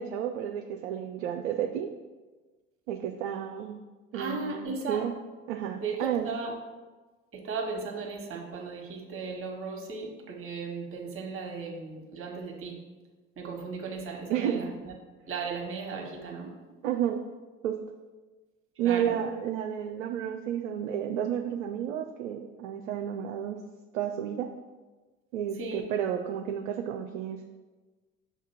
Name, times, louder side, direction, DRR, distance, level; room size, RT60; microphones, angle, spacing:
voice 1, 0.0-1.9 2.9-3.8 4.1-5.1 5.5-6.2 14.3-14.7 16.8-17.2 17.6-17.8 18.8-23.6 23.9-24.5 25.3-27.4, right 9 dB, 65° right, 5 dB, 0.5 m, -31 dB
voice 2, 4.1-5.0 5.8-6.5 7.3-12.7 13.4-14.9 15.3-16.5 18.8-19.2 25.6-25.8, right 4 dB, 35° right, 1 dB, 1.3 m, -36 dB
6.0 x 3.5 x 5.6 m, 1.3 s
figure-of-eight pair, 65°, 39 cm